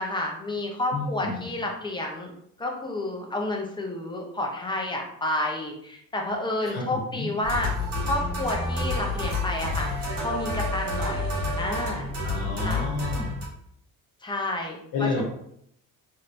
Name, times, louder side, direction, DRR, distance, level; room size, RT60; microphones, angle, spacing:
voice 1, 0.0-2.3 2.6-7.7 8.0-9.9 10.2-11.3 11.6-12.1 12.6-12.9 14.2-15.2, left 1 dB, 15° left, 0 dB, 0.5 m, -30 dB
voice 2, 0.9-1.4 6.7-6.8 7.1-7.3 12.2-13.4 14.9-15.2, left 3 dB, 85° left, -2 dB, 0.9 m, -30 dB
sound 1, 7.4-13.5, left 2 dB, 65° right, 1.5 m, -29 dB
3.2 x 3.0 x 2.5 m, 0.70 s
cardioid pair, 140°, 37 cm